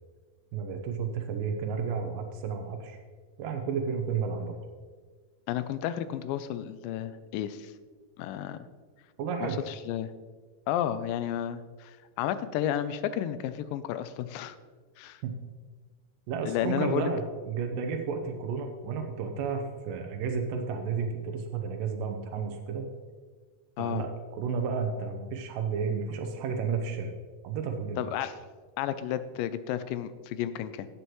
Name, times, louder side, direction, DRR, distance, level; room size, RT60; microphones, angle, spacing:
voice 1, 0.5-3.0 3.4-4.6 9.2-9.6 15.2-15.3 16.3-22.9 23.8-27.1 27.4-28.1, right 5 dB, 85° right, 4 dB, 2.4 m, -32 dB
voice 2, 5.5-7.7 8.2-8.7 9.4-10.1 10.7-14.6 15.0-15.2 16.4-17.1 23.8-24.0 28.0-28.3 28.8-30.9, left 10 dB, 85° left, 13 dB, 2.2 m, -32 dB
17.0 x 6.6 x 3.1 m, 1.5 s
omnidirectional pair, 4.0 m